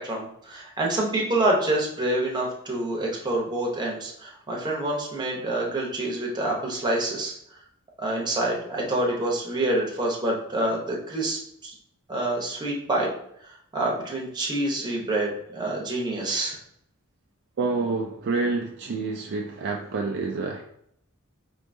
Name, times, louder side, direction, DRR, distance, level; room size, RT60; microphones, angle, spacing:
voice 1, 0.0-7.3 8.0-11.7 12.1-13.1 13.7-16.6, right 1 dB, 20° right, -2 dB, 0.8 m, -27 dB
voice 2, 17.6-20.6, right 3 dB, 55° right, 2 dB, 0.3 m, -28 dB
4.4 x 2.7 x 2.6 m, 0.72 s
head